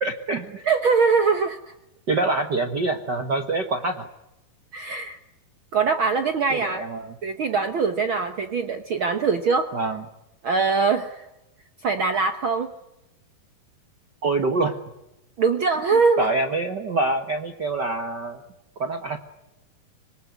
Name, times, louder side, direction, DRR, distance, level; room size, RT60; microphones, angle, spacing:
voice 1, 0.0-0.6 2.1-4.1 6.5-7.2 9.7-10.0 14.2-14.8 15.9-18.4 18.8-19.2, right 3 dB, 60° right, 6 dB, 1.1 m, -25 dB
voice 2, 0.6-1.6 4.7-5.2 5.7-6.8 7.2-9.7 10.4-11.2 11.8-12.7 15.4-16.3, right 4 dB, 80° right, 8 dB, 1.1 m, -22 dB
26.5 x 21.0 x 9.4 m, 0.92 s
omnidirectional pair, 4.3 m